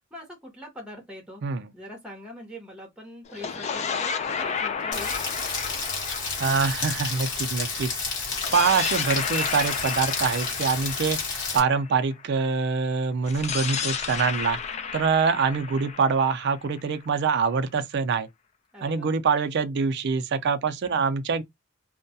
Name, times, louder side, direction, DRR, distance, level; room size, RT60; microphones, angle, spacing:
voice 1, 0.1-1.4 1.7-5.2 18.7-19.2, left 1 dB, 5° right, 0.8 m, -42 dB
sound 1, 3.3-7.7 8.3-12.2 13.2-17.1, left 6 dB, 35° left, 0.3 m, -32 dB
Rain, 4.9-11.6, left 4 dB, 60° left, 1.0 m, -30 dB
voice 2, 6.4-7.9 8.5-11.2 11.5-14.6 14.9-18.3 18.8-21.4, right 5 dB, 60° right, 0.4 m, -24 dB
2.2 x 2.1 x 2.6 m
head